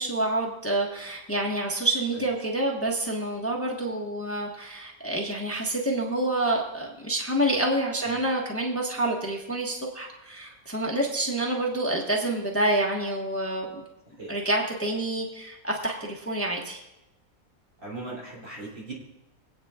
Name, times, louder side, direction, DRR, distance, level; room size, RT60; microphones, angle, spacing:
voice 1, 0.0-13.8 14.3-16.8, right 1 dB, 10° left, -2 dB, 1.3 m, -28 dB
voice 2, 17.8-18.9, right 2 dB, 65° right, -5 dB, 3.6 m, -39 dB
25.0 x 8.9 x 2.4 m, 0.94 s
omnidirectional pair, 1.5 m